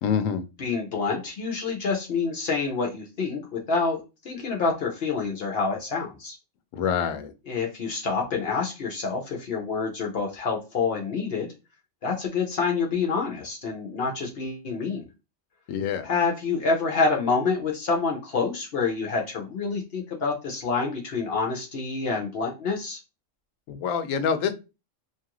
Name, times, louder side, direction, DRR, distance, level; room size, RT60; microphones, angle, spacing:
voice 1, 0.0-0.4 6.7-7.3 15.7-16.1 23.7-24.5, left 7 dB, 90° left, 9 dB, 1.0 m, -26 dB
voice 2, 0.6-6.4 7.5-11.5 12.0-15.0 16.0-23.0, left 4 dB, 60° left, 0 dB, 0.8 m, -27 dB
2.8 x 2.4 x 2.9 m, 0.28 s
omnidirectional pair, 1.3 m